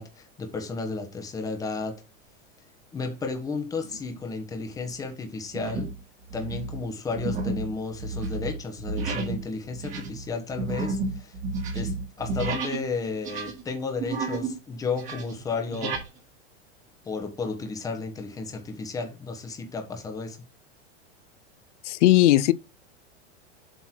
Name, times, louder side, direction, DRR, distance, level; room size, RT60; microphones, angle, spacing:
voice 1, 0.0-2.0 2.9-5.9 6.3-11.4 11.7-16.0 17.0-20.4, left 4 dB, 10° left, 1.3 m, -33 dB
sound 1, 3.8-4.2 4.7-4.9 5.5-6.0 6.3-12.9 13.2-14.6 14.9-16.1, right 3 dB, 20° right, 2.0 m, -31 dB
voice 2, 21.8-22.5, left 15 dB, 80° left, 0.7 m, -18 dB
7.9 x 4.1 x 4.5 m
supercardioid pair, 175°, 35 cm